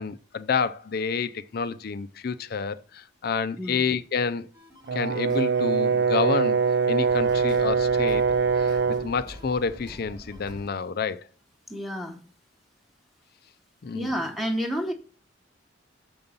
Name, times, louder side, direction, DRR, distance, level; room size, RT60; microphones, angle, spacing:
voice 1, 0.0-4.5 4.9-6.6 6.9-8.3 8.6-11.2 13.8-14.1, left 5 dB, 50° left, 0.4 m, -29 dB
voice 2, 3.6-3.9 11.7-12.2 13.9-14.9, equal, ahead, 0.9 m, -30 dB
sound 1, 4.5-10.7, equal, 20° right, 1.2 m, -46 dB
Brass instrument, 4.9-9.1, right 5 dB, 55° right, 0.4 m, -23 dB
6.9 x 5.3 x 5.5 m
head